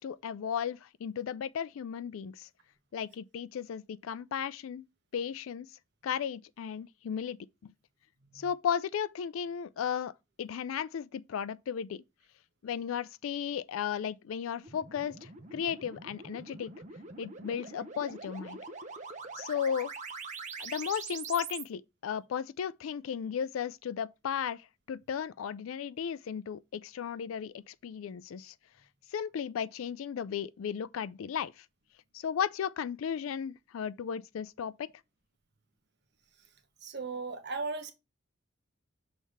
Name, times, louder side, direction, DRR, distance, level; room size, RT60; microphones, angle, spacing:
voice 1, 0.0-2.5 2.9-4.9 5.1-7.4 7.6-7.7 8.3-10.1 10.4-12.0 12.6-16.7 17.2-18.6 19.3-19.9 20.6-28.5 29.1-31.7 32.1-34.9, left 8 dB, 90° left, 0.4 m, -35 dB
sound 1, 14.6-21.6, right 4 dB, 35° right, 0.8 m, -44 dB
voice 2, 36.8-37.9, right 4 dB, 55° right, 1.1 m, -37 dB
6.4 x 3.4 x 5.4 m
head